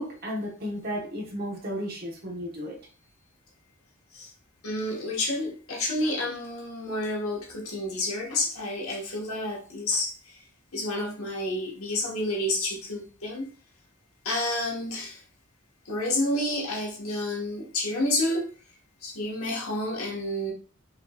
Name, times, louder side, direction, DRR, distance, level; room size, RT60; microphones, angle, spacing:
voice 1, 0.0-2.8, equal, 45° right, 1.1 m, -33 dB
voice 2, 4.6-10.4 10.7-13.5 14.2-15.2 15.9-18.5 19.0-20.5, left 1 dB, 90° left, 1.3 m, -29 dB
4.9 x 3.0 x 2.3 m
head